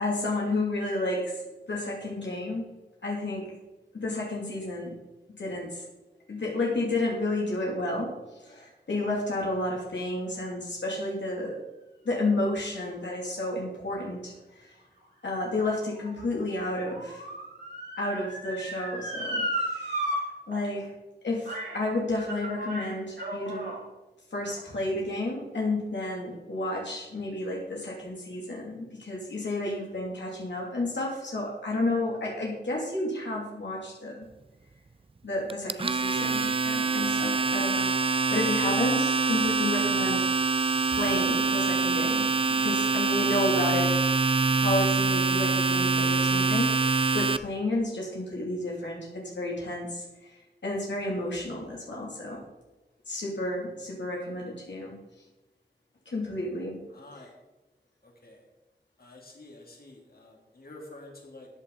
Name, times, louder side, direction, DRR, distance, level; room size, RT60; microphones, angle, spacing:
voice 1, 0.0-1.4 1.7-2.6 3.0-3.6 3.9-5.0 5.4-5.8 6.3-11.6 12.0-14.7 15.2-17.2 18.0-20.1 20.5-20.9 21.2-23.7 24.3-34.3 35.2-37.9 38.3-40.3 40.9-44.0 44.6-52.4 53.1-55.0 56.1-56.8, left 2 dB, 85° left, -3 dB, 2.4 m, -31 dB
Motor vehicle (road) / Siren, 15.0-20.2 20.5-20.6 21.4-21.8 22.1-23.8 24.5-24.6, right 1 dB, 70° right, 4.4 m, -35 dB
Domestic sounds home sounds, 35.5-47.4, right 4 dB, 30° right, 0.4 m, -25 dB
voice 2, 56.9-57.3 58.0-58.5 59.0-61.5, left 2 dB, 55° left, 0 dB, 3.0 m, -49 dB
13.5 x 8.4 x 3.9 m, 1.1 s
wide cardioid pair, 65°, 18 cm